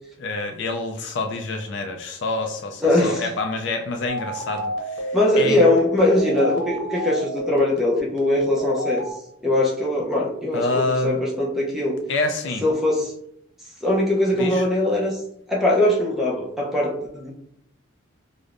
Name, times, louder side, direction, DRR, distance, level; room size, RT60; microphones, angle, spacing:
voice 1, 0.2-5.6 10.5-11.2 12.1-12.7 14.3-14.6, left 2 dB, 60° left, 4 dB, 0.3 m, -27 dB
voice 2, 2.8-3.3 5.1-9.0 9.4-12.0 12.6-13.1 13.8-15.2 15.5-17.3, left 1 dB, ahead, -4 dB, 0.6 m, -21 dB
sound 1, 4.1-9.1, left 1 dB, 60° right, 0.8 m, -30 dB
5.0 x 2.1 x 2.5 m, 0.73 s
head